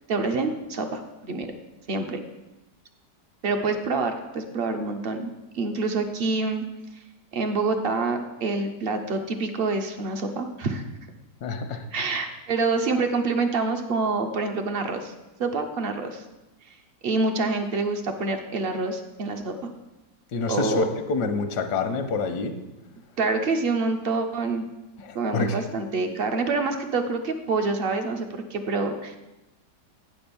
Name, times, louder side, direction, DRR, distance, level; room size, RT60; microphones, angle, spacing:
voice 1, 0.1-1.5 1.9-2.2 3.4-6.6 7.3-10.8 11.9-15.1 15.4-16.2 16.7-16.8 17.0-19.7 20.5-20.9 23.2-24.7 25.1-29.2, right 3 dB, 60° right, 6 dB, 0.6 m, -27 dB
voice 2, 11.4-11.8 20.3-22.6 25.0-25.6, left 3 dB, 80° left, 7 dB, 1.3 m, -27 dB
9.4 x 4.3 x 6.8 m, 1.0 s
omnidirectional pair, 1.8 m